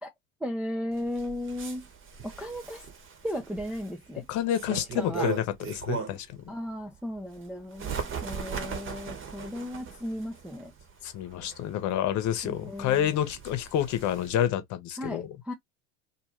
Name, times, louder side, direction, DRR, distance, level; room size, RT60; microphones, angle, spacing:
voice 1, 0.4-1.9 2.2-2.8 3.2-4.3 4.7-5.3 6.5-10.7 12.4-13.1 15.0-15.5, left 1 dB, 5° right, 0.4 m, -35 dB
Bird, 0.9-6.4 6.8-14.5, right 6 dB, 30° right, 1.0 m, -39 dB
voice 2, 4.3-6.4 11.0-15.4, left 10 dB, 45° left, 0.9 m, -29 dB
2.6 x 2.2 x 3.1 m
hypercardioid pair, 90°, 41 cm